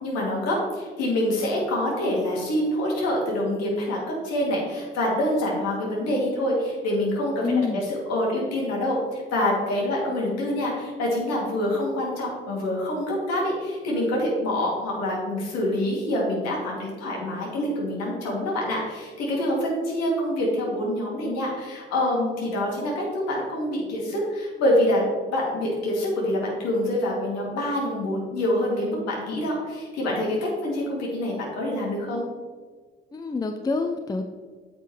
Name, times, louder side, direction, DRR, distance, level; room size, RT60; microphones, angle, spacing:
voice 1, 0.0-7.5 7.7-25.0 25.3-32.3, left 1 dB, 55° left, -3 dB, 2.6 m, -26 dB
voice 2, 7.4-7.8 33.1-34.2, left 4 dB, 15° left, 6 dB, 0.5 m, -26 dB
8.7 x 7.5 x 3.2 m, 1.5 s
figure-of-eight pair, 50°, 31 cm